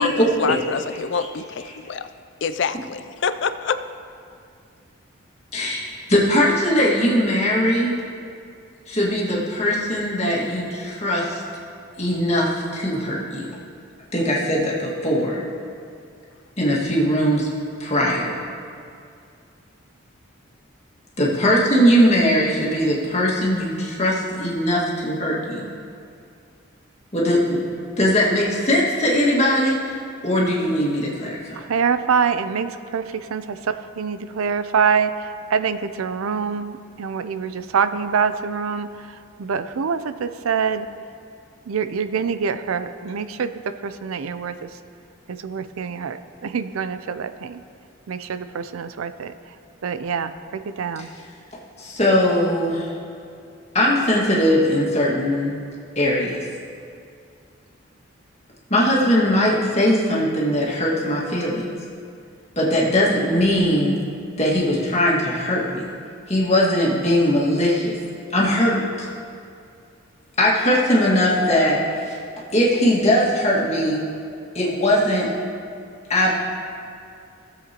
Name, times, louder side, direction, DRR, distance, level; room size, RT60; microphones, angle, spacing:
voice 1, 0.0-2.1 2.4-3.8, left 5 dB, 55° left, 11 dB, 0.4 m, -26 dB
voice 2, 5.5-7.9 8.9-11.4 12.0-13.5 14.1-15.4 16.6-17.5 17.8-18.4 21.2-25.7 27.1-30.0 30.2-31.6 51.8-52.9 53.7-55.6 56.0-56.4 58.7-61.7 62.6-64.0 64.4-65.9 66.3-68.0 68.3-69.1 70.4-72.2 72.5-74.0 74.6-75.3 76.1-76.3, equal, 30° left, -5 dB, 1.8 m, -20 dB
voice 3, 31.6-40.9 41.7-44.7 45.3-47.6 48.1-49.3 49.8-51.1, right 6 dB, 85° right, 11 dB, 0.4 m, -25 dB
17.0 x 7.6 x 2.9 m, 2.4 s
head